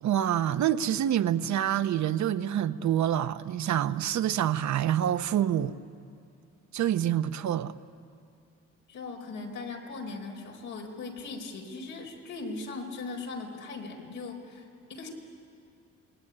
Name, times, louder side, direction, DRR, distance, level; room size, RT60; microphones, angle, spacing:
voice 1, 0.0-5.8 6.7-7.7, right 10 dB, 70° right, 0.9 m, -27 dB
voice 2, 8.9-15.1, left 3 dB, 90° left, 4.8 m, -39 dB
27.0 x 21.0 x 9.9 m
cardioid pair, 90°, 30 cm